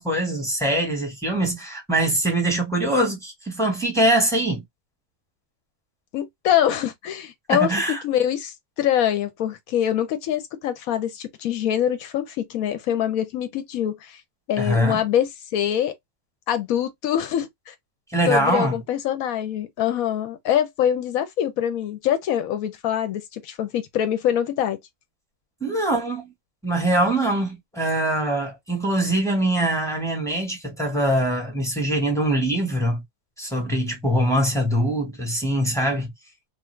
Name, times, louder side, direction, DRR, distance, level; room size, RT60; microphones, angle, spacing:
voice 1, 0.0-4.6 7.5-8.0 14.6-15.0 18.1-18.8 25.6-26.3 26.6-33.0 33.4-36.1, right 1 dB, ahead, 0.8 m, -23 dB
voice 2, 6.1-14.2 14.5-15.9 16.5-17.7 18.3-24.8, left 10 dB, 70° left, 1.0 m, -24 dB
2.6 x 2.4 x 3.1 m
omnidirectional pair, 1.6 m